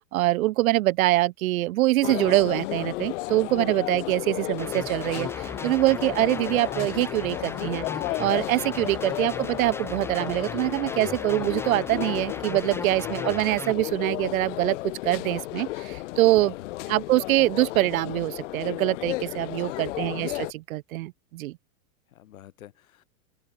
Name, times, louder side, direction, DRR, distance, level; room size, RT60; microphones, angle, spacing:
voice 1, 0.1-7.8 8.2-14.8 15.0-16.5 16.9-21.6, right 17 dB, 80° right, 0.6 m, -24 dB
sound 1, 2.0-20.5, left 19 dB, 60° left, 4.3 m, -33 dB
sound 2, 4.6-13.7, left 3 dB, 5° left, 1.3 m, -37 dB
voice 2, 16.4-16.9 19.6-20.0 22.1-23.0, left 12 dB, 75° left, 7.3 m, -49 dB
supercardioid pair, 135°, 41 cm